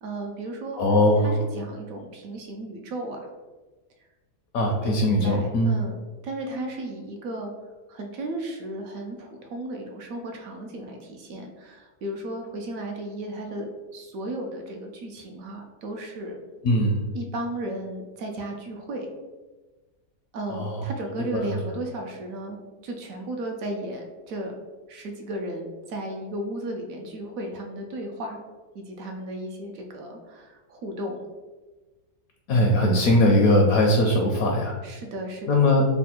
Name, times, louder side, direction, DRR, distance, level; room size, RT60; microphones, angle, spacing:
voice 1, 0.0-0.8 1.2-3.3 4.8-6.0 6.2-7.5 7.9-16.4 17.1-19.1 20.3-24.5 24.9-28.4 28.7-31.3 32.8-33.1 34.8-35.8, right 1 dB, 70° right, 2 dB, 0.9 m, -34 dB
voice 2, 0.8-1.4 4.5-5.7 16.6-17.0 20.5-20.8 21.3-21.6 32.5-34.7 35.5-35.9, left 1 dB, 70° left, 1 dB, 0.9 m, -20 dB
3.3 x 2.2 x 4.3 m, 1.2 s
omnidirectional pair, 1.7 m